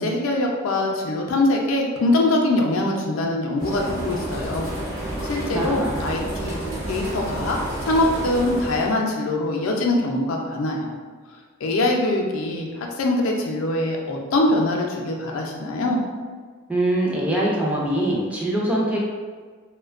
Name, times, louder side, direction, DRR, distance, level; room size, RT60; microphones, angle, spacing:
voice 1, 0.0-4.7 5.2-6.6 6.9-10.9 11.6-16.0, left 2 dB, 75° left, 0 dB, 0.4 m, -23 dB
sound 1, 3.6-9.0, right 1 dB, 70° right, 0.8 m, -30 dB
voice 2, 5.2-6.1 16.7-19.0, right 1 dB, 5° right, -4 dB, 0.3 m, -23 dB
2.5 x 2.1 x 2.4 m, 1.5 s
head